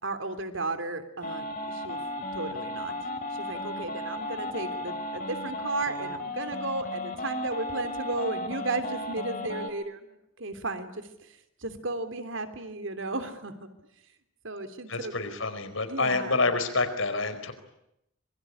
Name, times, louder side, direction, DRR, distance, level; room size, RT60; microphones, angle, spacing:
voice 1, 0.0-3.0 3.3-13.7 14.4-15.2 15.9-16.4, right 2 dB, 65° right, 9 dB, 3.1 m, -34 dB
sound 1, 1.2-9.7, left 1 dB, 40° left, 4.3 m, -35 dB
voice 2, 14.9-17.5, left 3 dB, 70° left, 9 dB, 4.6 m, -27 dB
26.0 x 22.5 x 9.9 m, 0.81 s
head